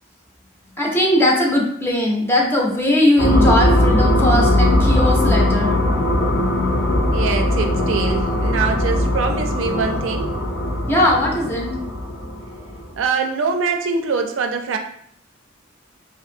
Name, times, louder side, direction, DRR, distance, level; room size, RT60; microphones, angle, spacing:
voice 1, 0.8-5.8 10.9-11.8, left 1 dB, 10° left, -2 dB, 0.4 m, -19 dB
sound 1, 3.2-13.0, left 1 dB, 70° left, 0.6 m, -19 dB
voice 2, 7.1-10.4 13.0-14.8, right 4 dB, 90° right, 4 dB, 0.4 m, -23 dB
2.5 x 2.5 x 2.6 m, 0.67 s
head